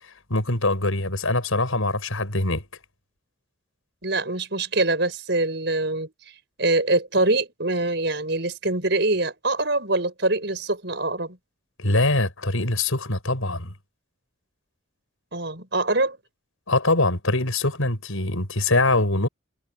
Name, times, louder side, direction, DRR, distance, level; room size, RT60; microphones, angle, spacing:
voice 1, 0.3-2.6 11.8-13.7 16.7-19.3, left 2 dB, 90° left, 6.5 m, -23 dB
voice 2, 4.0-6.1 6.6-11.4 15.3-16.2, right 2 dB, 55° right, 6.1 m, -24 dB
head